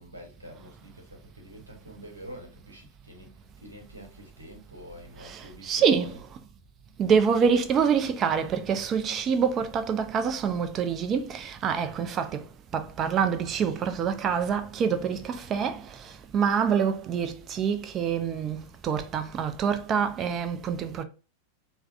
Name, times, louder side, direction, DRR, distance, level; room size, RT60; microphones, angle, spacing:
voice 1, 0.0-3.3 3.6-6.3, equal, 80° right, 0.8 m, -46 dB
voice 2, 5.2-6.1 7.0-12.4 12.7-15.8 16.3-21.0, right 7 dB, 30° right, 0.4 m, -26 dB
3.4 x 2.1 x 2.4 m
figure-of-eight pair, 90°, 0 cm